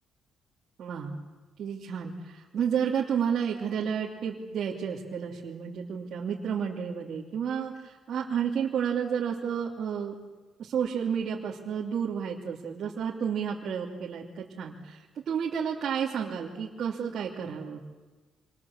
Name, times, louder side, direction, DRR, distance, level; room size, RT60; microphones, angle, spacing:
voice 1, 0.8-1.1 1.6-10.1 10.6-17.8, right 7 dB, 55° right, -3 dB, 2.8 m, -31 dB
27.0 x 26.5 x 7.3 m, 1.2 s
cardioid pair, 125°, 0 cm